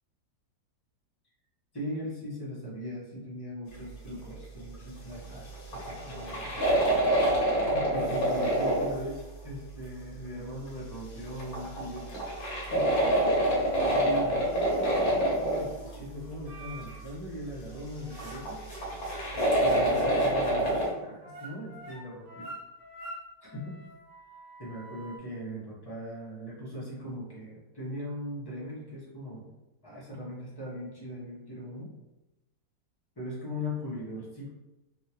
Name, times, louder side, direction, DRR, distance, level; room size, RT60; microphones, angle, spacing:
voice 1, 1.7-6.6 7.7-12.2 12.7-12.9 13.8-18.9 19.3-22.5 23.4-23.8 24.6-29.5 29.8-31.9 33.2-34.5, equal, 20° left, -7 dB, 0.7 m, -39 dB
sound 1, 5.1-5.2 5.5-9.1 11.3-16.0 18.2-20.9, right 1 dB, 55° left, 1.3 m, -26 dB
sound 2, 16.5-17.1 17.7-25.2, right 1 dB, 70° right, 1.5 m, -47 dB
3.6 x 2.4 x 2.9 m, 1.0 s
omnidirectional pair, 2.0 m